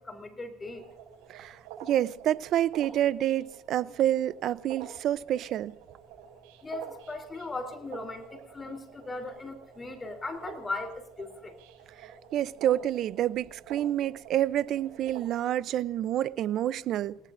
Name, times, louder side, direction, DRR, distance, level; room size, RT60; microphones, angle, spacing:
voice 1, 0.1-0.8 6.6-8.3 8.5-11.5, left 2 dB, 20° left, 3.7 m, -38 dB
sound 1, 0.6-15.2, right 8 dB, 85° right, 6.6 m, -49 dB
voice 2, 1.3-5.7 12.0-17.2, right 12 dB, 50° right, 0.7 m, -28 dB
29.0 x 18.5 x 2.6 m
cardioid pair, 120°, 0 cm